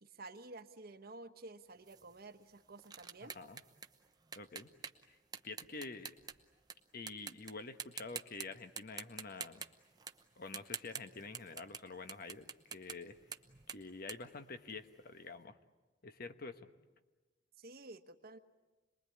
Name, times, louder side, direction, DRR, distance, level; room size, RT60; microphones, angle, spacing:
voice 1, 0.0-3.3 17.6-18.4, right 2 dB, 50° right, 8 dB, 1.2 m, -52 dB
sound 1, 1.9-6.7 7.1-7.5 7.8-8.5 8.8-11.8 12.1-15.1, right 6 dB, 20° right, 0.9 m, -47 dB
voice 2, 3.2-3.6 4.4-4.7 5.1-5.2 5.4-6.1 6.9-9.7 10.4-13.2 13.7-15.6 16.0-16.7, left 3 dB, 50° left, 9 dB, 1.2 m, -48 dB
27.0 x 21.0 x 9.8 m, 1.2 s
head